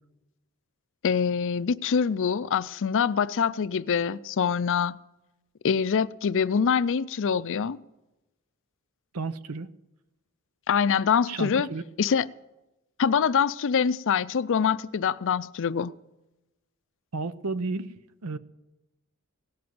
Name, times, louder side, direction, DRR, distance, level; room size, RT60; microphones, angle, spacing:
voice 1, 1.0-5.0 5.6-7.8 10.7-11.7 12.0-12.3 13.0-15.9, left 6 dB, 60° left, 0.5 m, -24 dB
voice 2, 9.1-9.7 11.3-11.8 17.1-17.9 18.2-18.4, right 3 dB, 85° right, 0.7 m, -32 dB
17.5 x 7.8 x 9.3 m
head